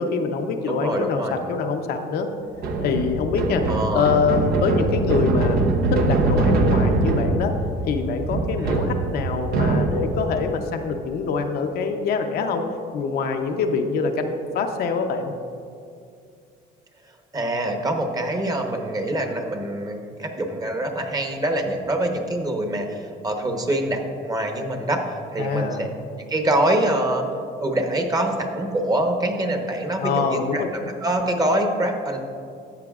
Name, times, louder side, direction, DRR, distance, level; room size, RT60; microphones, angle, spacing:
voice 1, 0.0-2.3 2.8-3.7 3.9-7.5 7.8-12.6 12.9-15.3 25.4-25.8 30.0-30.7, left 5 dB, 65° left, 4 dB, 0.7 m, -24 dB
voice 2, 0.7-1.4 3.7-4.1 8.6-8.8 17.3-25.9 26.2-27.2 27.6-32.2, right 1 dB, 20° right, 4 dB, 1.0 m, -25 dB
sound 1, 2.5-10.3, right 2 dB, 70° right, 0.9 m, -23 dB
13.0 x 7.5 x 2.4 m, 2.4 s
cardioid pair, 110°, 17 cm